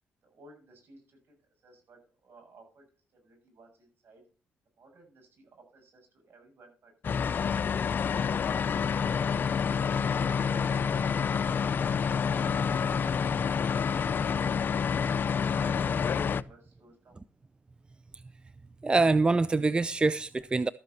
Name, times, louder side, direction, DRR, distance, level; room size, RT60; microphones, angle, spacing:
voice 1, 0.2-1.4 1.6-4.2 4.8-7.5 8.7-9.7 14.9-17.2, right 3 dB, 60° right, 7.3 m, -57 dB
sound 1, 7.0-16.4, left 6 dB, 50° left, 0.6 m, -28 dB
voice 2, 18.8-20.7, right 3 dB, 20° right, 0.5 m, -25 dB
13.5 x 8.5 x 4.4 m
cardioid pair, 75°, 4 cm